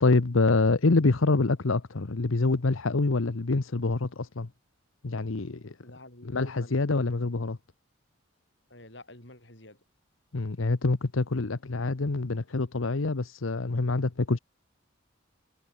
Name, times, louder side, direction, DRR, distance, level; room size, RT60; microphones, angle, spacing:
voice 1, 0.0-4.5 5.0-5.8 6.2-7.6 10.3-14.4, left 3 dB, 85° left, 0.9 m, -26 dB
voice 2, 5.8-6.7 8.7-9.8, left 1 dB, 60° left, 7.6 m, -48 dB
head